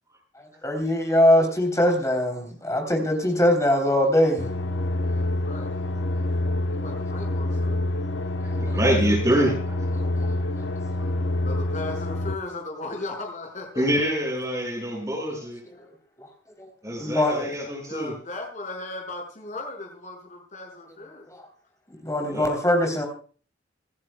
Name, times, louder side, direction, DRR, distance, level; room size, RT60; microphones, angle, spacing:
voice 1, 0.4-4.5 8.7-8.8 10.0-10.1 16.2-16.3 16.6-16.7 17.0-17.5 21.3-21.4 22.0-23.1, left 1 dB, 15° left, 3 dB, 3.5 m, -22 dB
sound 1, 4.4-12.4, left 1 dB, 80° left, 1.1 m, -27 dB
voice 2, 5.0-5.7 6.7-7.9 11.4-13.8 15.7-16.0 17.8-21.3, left 2 dB, 40° left, 1 dB, 5.8 m, -37 dB
voice 3, 8.6-9.7 11.0-11.1 13.7-15.6 16.8-18.1 22.2-22.5, equal, 20° right, -1 dB, 6.4 m, -25 dB
27.0 x 11.0 x 2.3 m, 0.40 s
head